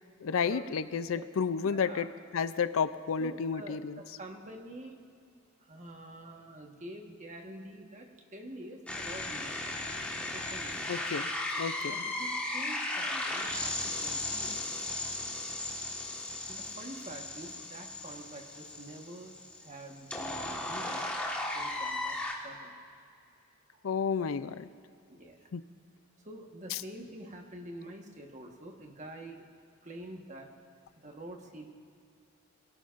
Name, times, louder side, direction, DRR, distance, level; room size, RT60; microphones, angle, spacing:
voice 1, 0.2-4.0 10.9-11.3 11.6-12.1 23.8-24.7 25.5-25.6 26.7-26.8, left 6 dB, 70° left, 13 dB, 0.5 m, -31 dB
voice 2, 1.6-2.1 3.2-5.0 5.6-9.9 10.3-10.9 11.9-14.7 16.5-21.1 21.5-22.7 25.1-25.5 26.2-29.4 29.8-30.5 31.0-31.7, right 1 dB, 35° right, 2 dB, 1.4 m, -47 dB
sound 1, 8.9-22.3, left 2 dB, 5° left, 1.5 m, -36 dB
22.5 x 17.0 x 2.6 m, 2.4 s
head